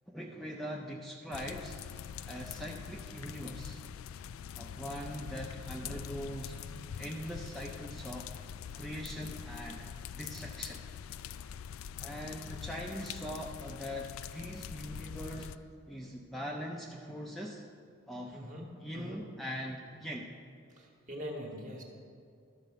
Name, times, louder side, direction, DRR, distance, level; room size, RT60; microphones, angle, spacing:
voice 1, 0.1-1.8 2.3-3.8 4.6-6.6 7.0-8.3 8.7-9.9 10.2-10.8 12.0-15.5 15.9-17.6 18.1-18.4 18.8-20.3, equal, ahead, -1 dB, 0.5 m, -41 dB
sound 1, 1.3-15.6, left 8 dB, 70° left, 0.3 m, -44 dB
voice 2, 18.3-19.2 20.7-21.8, equal, 35° right, 0 dB, 1.5 m, -43 dB
12.5 x 5.0 x 6.7 m, 2.4 s
head